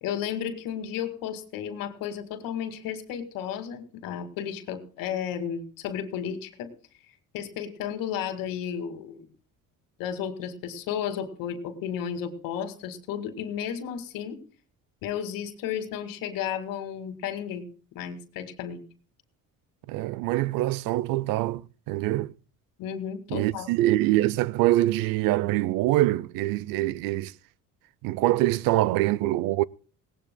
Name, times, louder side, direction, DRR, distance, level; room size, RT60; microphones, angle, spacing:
voice 1, 0.0-6.7 7.3-9.3 10.0-14.4 15.0-17.7 17.9-18.8 22.8-23.7, left 8 dB, 85° left, 2.2 m, -33 dB
voice 2, 19.9-22.3 23.3-27.3 28.0-29.6, right 16 dB, 85° right, 0.6 m, -24 dB
19.5 x 18.0 x 2.2 m
cardioid pair, 130°, 33 cm